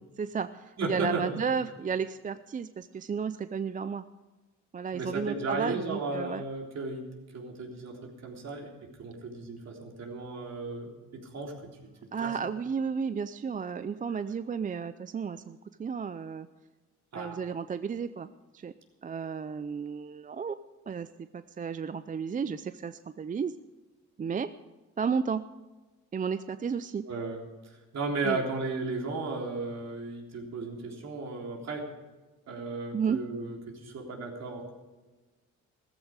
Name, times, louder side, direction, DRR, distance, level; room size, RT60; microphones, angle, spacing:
voice 1, 0.2-4.0 4.7-6.4 12.1-16.5 17.2-18.3 18.5-18.7 19.0-20.6 20.9-23.5 24.2-24.5 25.0-25.4 26.1-27.0 28.2-28.4 32.9-33.2, right 6 dB, 25° right, 12 dB, 0.5 m, -33 dB
voice 2, 0.8-1.4 4.9-7.1 7.3-8.7 9.0-11.6 12.2-12.4 14.1-14.2 17.1-17.4 27.1-27.4 27.9-31.9 32.5-34.7, right 3 dB, 60° right, 0 dB, 3.7 m, -35 dB
14.5 x 14.5 x 4.8 m, 1.2 s
cardioid pair, 90°, 30 cm